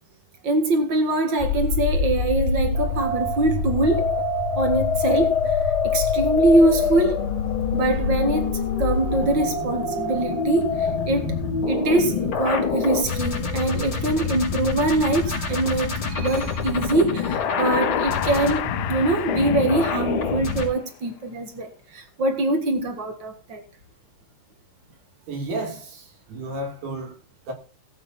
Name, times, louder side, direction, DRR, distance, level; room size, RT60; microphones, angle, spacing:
voice 1, 0.4-4.1 4.5-7.3 7.7-11.4 11.7-23.6, right 2 dB, 85° right, 1.0 m, -23 dB
sound 1, 1.4-20.7, left 4 dB, 30° left, 4.5 m, -25 dB
sound 2, 17.1-21.0, left 12 dB, 80° left, 2.1 m, -31 dB
voice 2, 25.3-27.1 27.5-27.6, right 2 dB, 65° right, 4.4 m, -32 dB
17.5 x 8.4 x 4.3 m
omnidirectional pair, 4.9 m